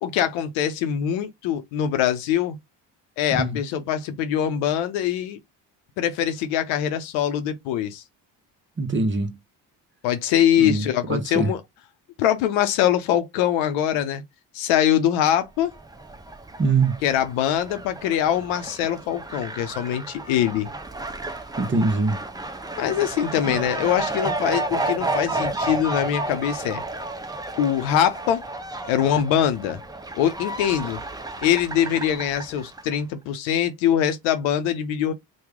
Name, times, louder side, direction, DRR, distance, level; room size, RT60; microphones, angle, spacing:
voice 1, 0.0-2.6 3.2-5.4 6.0-8.0 10.0-11.6 12.2-14.2 14.5-15.7 17.0-20.7 22.8-26.8 27.6-28.4 28.8-29.8 30.1-31.0 31.4-35.1, left 10 dB, 85° left, 0.7 m, -23 dB
voice 2, 8.8-9.3 10.6-11.5 16.6-17.0 21.6-22.2 23.5-23.6, right 3 dB, 25° right, 0.9 m, -23 dB
Fowl, 15.6-33.0, right 2 dB, 10° right, 0.5 m, -32 dB
3.0 x 2.3 x 3.5 m
supercardioid pair, 65°, 46 cm